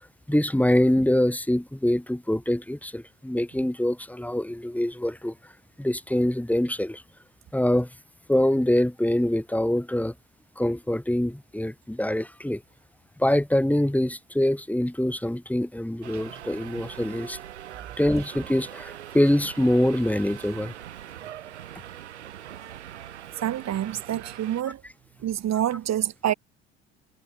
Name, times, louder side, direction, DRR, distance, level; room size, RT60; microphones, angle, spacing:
voice 1, 0.3-5.3 5.8-7.0 7.5-7.9 8.3-10.1 10.6-12.6 13.2-17.4 18.0-20.7, left 1 dB, 5° left, 7.3 m, -24 dB
Subway metro underground, 16.0-24.6, right 11 dB, 90° right, 5.4 m, -42 dB
voice 2, 23.4-24.8 25.2-26.3, right 11 dB, 50° right, 3.8 m, -27 dB
hypercardioid pair, 60°, 33 cm